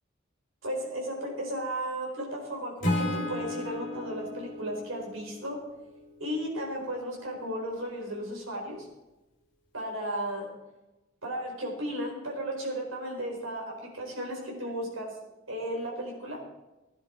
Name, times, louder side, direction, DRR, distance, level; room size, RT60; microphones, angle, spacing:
voice 1, 0.6-5.6 6.2-8.8 9.7-10.5 11.2-15.1 15.5-16.4, right 1 dB, 90° right, 0 dB, 4.6 m, -34 dB
Acoustic guitar / Strum, 2.8-6.0, left 1 dB, 40° left, 2.7 m, -33 dB
16.5 x 10.0 x 4.5 m, 1.0 s
head